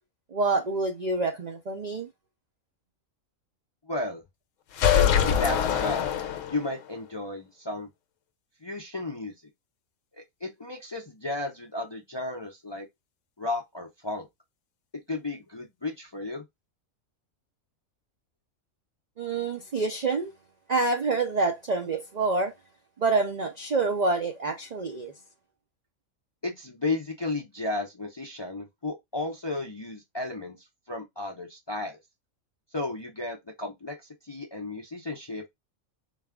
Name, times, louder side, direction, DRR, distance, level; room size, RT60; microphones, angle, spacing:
voice 1, 0.3-2.1 19.2-20.3 20.7-22.5 23.0-25.1, right 3 dB, 75° right, 0.3 m, -27 dB
voice 2, 3.9-4.2 4.9-6.1 6.5-7.9 8.6-9.3 10.1-12.9 13.4-14.3 15.1-16.4 26.4-30.6 30.9-32.0 32.7-34.0 34.3-35.5, left 2 dB, 35° left, 0.4 m, -33 dB
sound 1, 4.7-6.8, left 9 dB, 65° left, 0.9 m, -23 dB
4.1 x 2.4 x 3.4 m
omnidirectional pair, 1.5 m